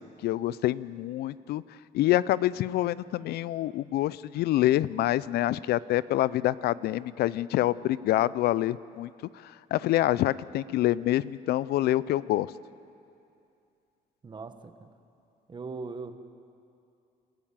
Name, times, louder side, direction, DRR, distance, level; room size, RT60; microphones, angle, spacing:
voice 1, 0.0-1.6 1.9-9.1 9.4-12.5, left 14 dB, 70° left, 19 dB, 0.5 m, -26 dB
voice 2, 14.2-14.9 15.5-16.1, right 4 dB, 25° right, 8 dB, 1.3 m, -39 dB
28.0 x 14.0 x 7.4 m, 2.6 s
cardioid pair, 110°, 17 cm